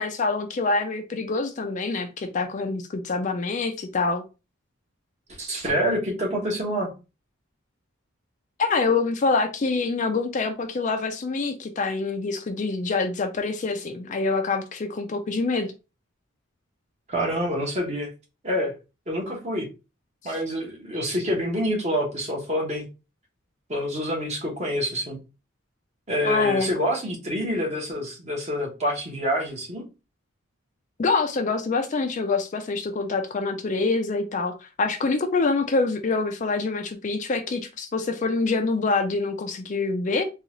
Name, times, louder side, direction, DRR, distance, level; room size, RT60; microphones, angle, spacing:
voice 1, 0.0-4.2 8.6-15.7 20.2-20.3 26.2-26.7 31.0-40.2, left 3 dB, 35° left, 0.4 m, -25 dB
voice 2, 5.3-6.9 17.1-18.1 18.4-18.7 19.1-19.7 20.2-22.9 23.7-25.2 26.1-29.9, equal, 35° right, 1.1 m, -27 dB
3.7 x 2.4 x 3.0 m
head